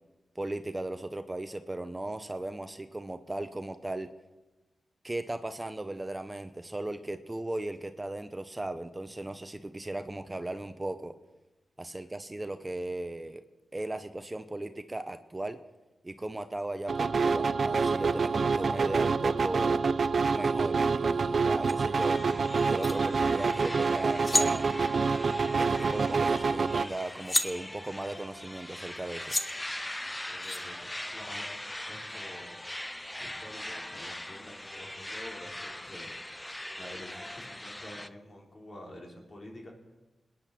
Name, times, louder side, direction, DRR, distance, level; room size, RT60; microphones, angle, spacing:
voice 1, 0.3-4.1 5.0-11.1 11.8-13.4 13.7-15.6 16.0-19.8 20.3-24.7 25.6-29.4, right 1 dB, 20° right, 9 dB, 0.8 m, -37 dB
sound 1, 16.9-26.8, right 4 dB, 65° right, 0.5 m, -27 dB
sound 2, 21.6-21.7 22.6-22.9 23.9-24.0 24.1-24.5 26.4-26.5 26.8-27.5 28.8-28.9 29.3-29.4 30.4-30.6, left 2 dB, 30° left, 1.3 m, -30 dB
sound 3, 22.0-38.1, left 1 dB, 15° left, 0.6 m, -41 dB
voice 2, 30.3-30.8 31.1-32.6 33.0-36.1 36.8-40.0, left 1 dB, 45° left, -1 dB, 4.0 m, -48 dB
21.0 x 10.0 x 4.3 m, 1.1 s
cardioid pair, 65°, 0 cm